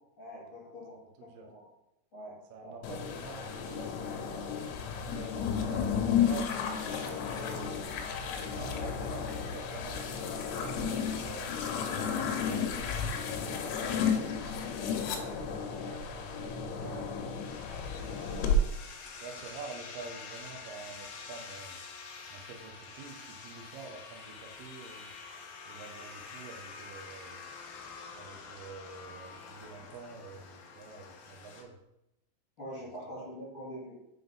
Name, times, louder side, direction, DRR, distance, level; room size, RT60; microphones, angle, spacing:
voice 1, 0.2-1.0 1.4-1.7 2.1-2.3 2.6-2.8 32.6-34.0, equal, 45° left, -10 dB, 1.9 m, -44 dB
voice 2, 2.5-4.6 5.1-7.8 8.2-10.1 10.4-11.6 12.3-14.6 15.1-17.2 17.7-18.4 19.2-21.8 22.3-25.1 25.7-27.4 28.1-31.8 32.8-32.9 33.2-33.3, right 4 dB, 85° right, 2 dB, 1.9 m, -48 dB
sound 1, 2.8-18.6, left 6 dB, 85° left, 3.3 m, -33 dB
sound 2, 17.4-31.6, left 5 dB, 70° left, 2.5 m, -47 dB
7.3 x 4.0 x 5.4 m, 0.85 s
omnidirectional pair, 5.3 m